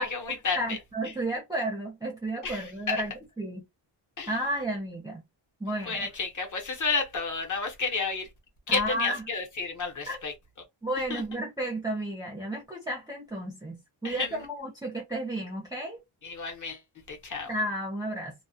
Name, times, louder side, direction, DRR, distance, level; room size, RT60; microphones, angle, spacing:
voice 1, 0.0-0.8 1.0-1.1 2.4-3.0 4.2-4.4 5.9-8.3 8.7-10.3 11.1-11.2 14.0-14.5 16.2-16.8 17.1-17.5, left 4 dB, 40° left, 0.9 m, -31 dB
voice 2, 0.6-3.1 3.4-3.6 4.3-5.2 5.6-6.1 8.7-9.2 10.1-10.2 10.8-16.0 17.5-18.3, right 1 dB, 10° right, 0.5 m, -32 dB
2.3 x 2.1 x 2.7 m
wide cardioid pair, 165°, 48 cm